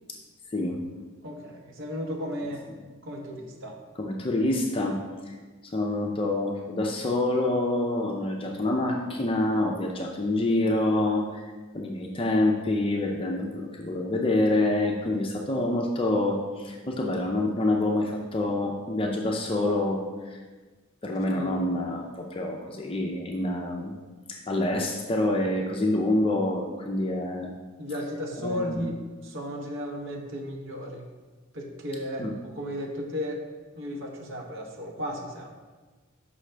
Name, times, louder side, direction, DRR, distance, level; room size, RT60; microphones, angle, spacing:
voice 1, 1.2-2.6 3.0-3.8 21.2-21.5 27.8-31.1 31.5-33.4 33.8-35.5, equal, 65° right, 1 dB, 0.9 m, -34 dB
voice 2, 4.0-5.0 5.3-5.4 5.6-11.4 11.7-20.0 20.3-20.4 21.0-23.9 24.3-27.5 28.4-28.8 32.2-32.3, left 2 dB, 25° left, 0 dB, 0.5 m, -27 dB
6.3 x 5.5 x 3.3 m, 1.3 s
head